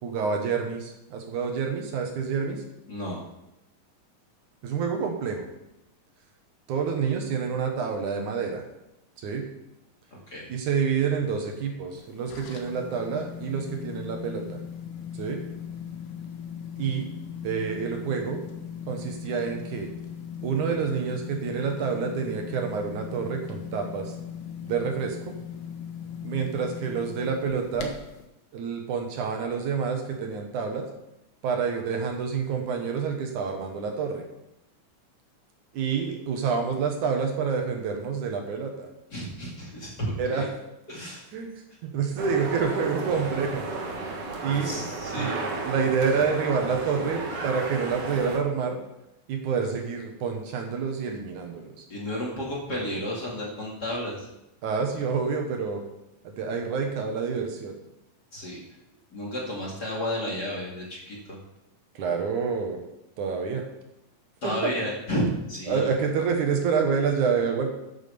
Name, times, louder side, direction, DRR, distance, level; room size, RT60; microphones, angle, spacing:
voice 1, 0.0-2.6 4.6-5.5 6.7-8.6 9.2-9.5 10.5-14.6 15.1-15.4 16.8-17.1 17.4-18.4 18.9-19.9 20.4-24.1 24.6-25.4 26.2-28.0 28.5-30.9 31.4-34.3 35.7-38.9 40.2-40.5 41.3-41.5 41.8-43.7 44.4-44.7 45.2-45.3 45.6-48.8 49.3-51.8 54.6-55.8 56.2-57.8 61.9-62.8 63.2-63.6 64.4-64.7 65.7-67.7, right 6 dB, 70° right, 3 dB, 2.7 m, -28 dB
voice 2, 2.9-3.2 10.3-10.5 39.1-40.4 40.9-41.2 44.5-45.4 51.9-54.3 58.3-58.6 59.1-61.4 64.4-65.9, equal, 35° left, -4 dB, 2.6 m, -32 dB
sound 1, 12.0-28.2, left 8 dB, 80° left, 2.9 m, -39 dB
sound 2, 42.2-48.4, right 3 dB, 55° right, 2.2 m, -34 dB
9.5 x 7.4 x 6.9 m, 0.87 s
omnidirectional pair, 3.7 m